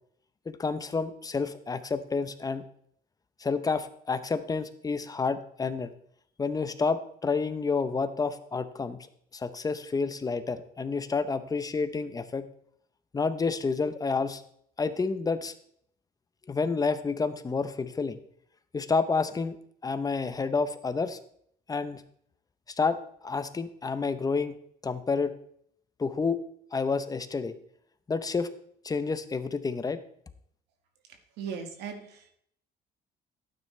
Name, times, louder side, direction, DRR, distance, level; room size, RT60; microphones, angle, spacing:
voice 1, 0.5-2.6 3.4-5.9 6.4-9.0 9.3-12.5 13.1-14.4 14.8-15.5 16.5-18.2 18.7-19.6 19.8-21.2 21.7-22.0 22.8-23.0 23.2-24.6 24.8-25.3 26.0-26.4 26.7-27.5 28.1-28.5 28.8-30.0, left 4 dB, 20° left, 12 dB, 0.8 m, -29 dB
voice 2, 31.1-32.3, right 6 dB, 85° right, 5 dB, 1.7 m, -39 dB
12.0 x 9.4 x 3.3 m, 0.67 s
cardioid pair, 110°, 17 cm